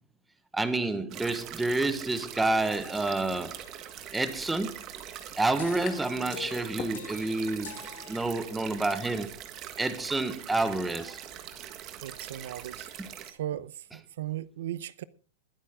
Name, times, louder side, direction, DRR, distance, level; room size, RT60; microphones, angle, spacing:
voice 1, 0.5-3.6 4.1-4.8 5.4-7.7 8.1-9.3 9.8-11.2, right 2 dB, 5° right, 1.2 m, -29 dB
sound 1, 1.1-13.3, right 10 dB, 25° right, 1.6 m, -43 dB
sound 2, 5.6-8.9, left 10 dB, 75° left, 2.7 m, -46 dB
sound 3, 5.8-6.3 6.6-7.5, left 10 dB, 25° left, 1.5 m, -43 dB
voice 2, 12.0-12.9 13.3-15.0, right 12 dB, 65° right, 0.7 m, -37 dB
21.0 x 9.2 x 3.7 m
supercardioid pair, 165°, 0 cm